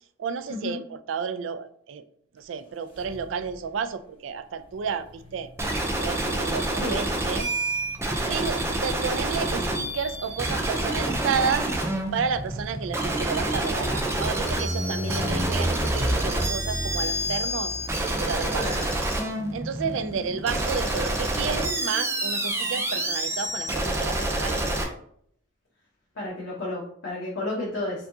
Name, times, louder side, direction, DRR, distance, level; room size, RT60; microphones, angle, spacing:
voice 1, 0.2-2.0 2.3-5.5 6.0-7.5 8.3-11.7 12.1-17.8 18.2-18.8 19.5-24.7, right 6 dB, 80° right, 10 dB, 0.3 m, -31 dB
sound 1, 2.9-3.6 4.7-18.4, equal, 30° left, 0.9 m, -34 dB
sound 2, 5.6-24.8, right 1 dB, 15° right, 0.5 m, -28 dB
voice 2, 26.1-28.1, left 2 dB, 90° left, -6 dB, 1.0 m, -32 dB
4.3 x 2.7 x 2.7 m, 0.65 s
head